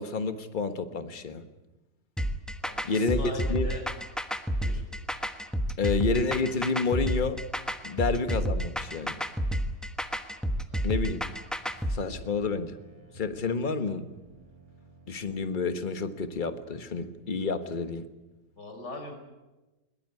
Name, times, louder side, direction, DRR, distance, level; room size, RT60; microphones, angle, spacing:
voice 1, 0.0-1.4 2.8-3.2 3.5-3.7 5.8-7.4 7.8-9.2 10.8-11.2 11.9-12.8 13.1-14.1 15.1-18.0, left 4 dB, 30° left, 9 dB, 1.4 m, -29 dB
sound 1, 2.2-12.0, equal, ahead, 1.0 m, -30 dB
voice 2, 2.6-3.8 4.6-4.8 10.7-11.0 18.6-19.1, left 3 dB, 85° left, 5 dB, 5.6 m, -40 dB
sound 2, 11.6-17.8, right 1 dB, 20° right, 6.8 m, -56 dB
21.5 x 20.5 x 9.7 m, 1.1 s
omnidirectional pair, 1.8 m